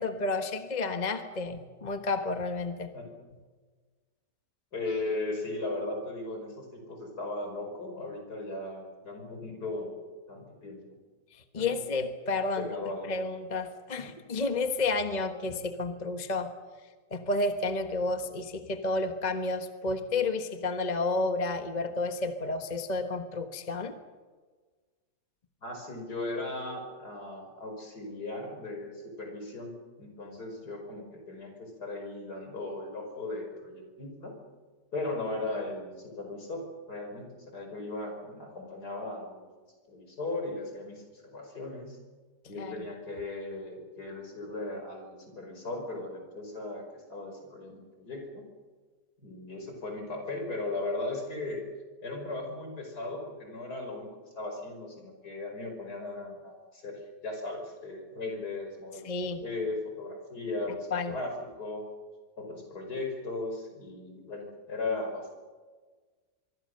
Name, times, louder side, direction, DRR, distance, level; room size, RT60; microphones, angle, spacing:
voice 1, 0.0-2.9 11.3-12.7 13.1-16.5 17.1-23.9 42.6-42.7 59.0-59.4 60.9-61.1, left 3 dB, 25° left, 6 dB, 1.4 m, -31 dB
voice 2, 4.7-10.0 10.3-11.0 11.6-11.8 12.6-13.2 14.0-14.1 25.6-34.3 34.9-39.4 39.9-42.0 42.4-48.5 49.2-51.6 52.0-54.1 54.4-61.8 62.4-65.3, left 2 dB, 65° left, 3 dB, 5.8 m, -37 dB
24.5 x 24.5 x 6.7 m, 1.4 s
omnidirectional pair, 1.8 m